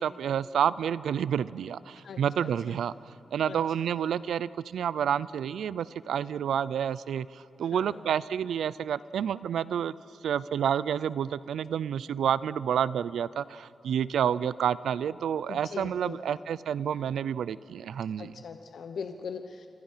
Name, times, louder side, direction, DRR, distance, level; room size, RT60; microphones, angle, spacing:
voice 1, 0.0-2.9 3.3-9.9 10.2-18.3, right 8 dB, 85° right, 18 dB, 0.5 m, -29 dB
voice 2, 2.0-2.8 3.5-3.6 7.6-8.2 15.5-16.2 18.2-19.7, left 6 dB, 60° left, 7 dB, 1.1 m, -41 dB
29.0 x 26.5 x 5.7 m, 2.8 s
wide cardioid pair, 170°, 0 cm